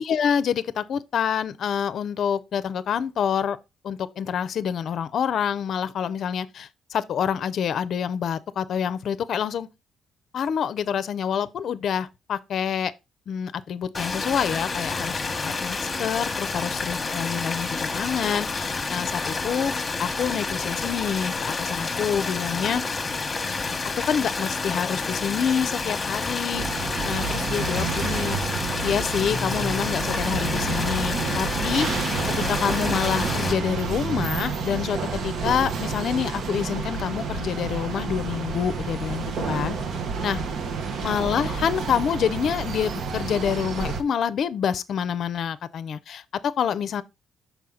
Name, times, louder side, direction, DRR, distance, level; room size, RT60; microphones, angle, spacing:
voice 1, 0.0-3.6 3.8-9.7 10.3-12.9 13.3-19.7 20.0-22.8 24.0-28.4 28.8-31.9 32.5-35.0 35.2-39.8 40.2-40.4 41.0-46.2 46.6-47.0, left 8 dB, 65° left, 0.5 m, -27 dB
sound 1, 13.9-33.5, left 4 dB, 30° left, 1.0 m, -29 dB
sound 2, 26.5-44.0, right 4 dB, 70° right, 0.9 m, -29 dB
5.6 x 4.6 x 3.7 m
cardioid pair, 90°, 0 cm